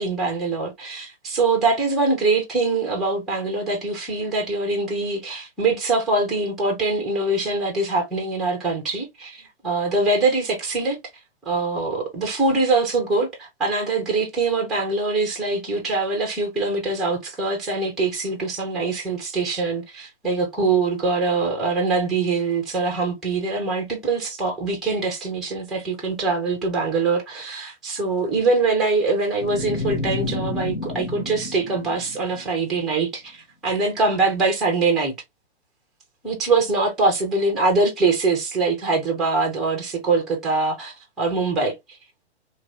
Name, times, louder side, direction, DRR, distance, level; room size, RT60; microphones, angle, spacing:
voice 1, 0.0-11.0 11.5-33.4 33.6-35.1 36.2-41.8, right 3 dB, ahead, 0.3 m, -23 dB
sound 1, 29.4-32.7, left 2 dB, 85° left, 0.9 m, -30 dB
3.0 x 2.6 x 3.0 m
figure-of-eight pair, 120°, 34 cm